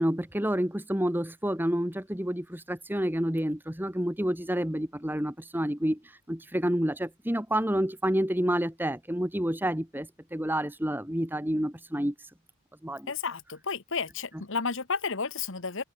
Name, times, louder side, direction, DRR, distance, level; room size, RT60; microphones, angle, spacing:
voice 1, 0.0-6.0 6.3-12.1 12.8-13.1, equal, 10° right, 1.8 m, -29 dB
voice 2, 13.1-15.8, left 5 dB, 60° left, 1.4 m, -32 dB
head